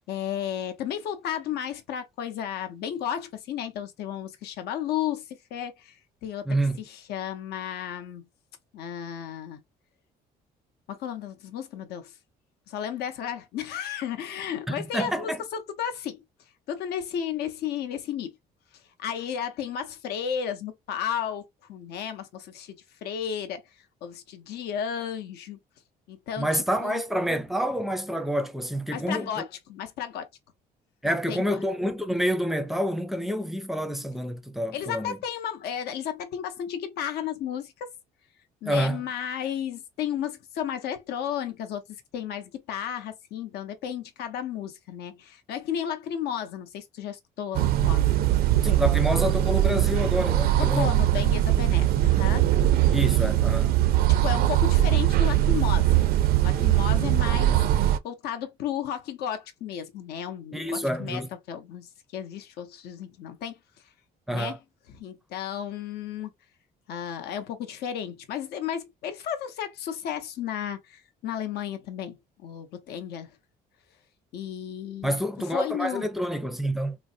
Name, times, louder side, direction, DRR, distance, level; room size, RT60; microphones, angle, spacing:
voice 1, 0.1-6.5 6.9-8.3 8.7-9.6 10.9-12.1 12.7-16.2 16.7-18.4 19.0-21.4 21.7-22.8 23.0-23.6 24.0-25.6 26.1-27.0 28.9-30.3 31.0-31.6 34.7-37.9 38.6-41.8 42.1-48.1 50.6-52.5 52.8-52.9 54.2-55.9 56.4-63.6 64.3-64.6 64.9-66.3 66.9-73.4 74.3-75.2 75.5-76.0, left 9 dB, 75° left, 0.7 m, -33 dB
voice 2, 6.5-6.8 14.7-15.4 26.4-29.4 31.0-35.2 38.6-39.1 48.6-51.2 52.9-53.7 60.5-61.3 64.3-64.6 75.0-77.0, equal, ahead, 0.5 m, -28 dB
sound 1, 47.5-58.0, right 13 dB, 65° right, 0.4 m, -21 dB
3.2 x 2.0 x 2.6 m
cardioid pair, 110°, 17 cm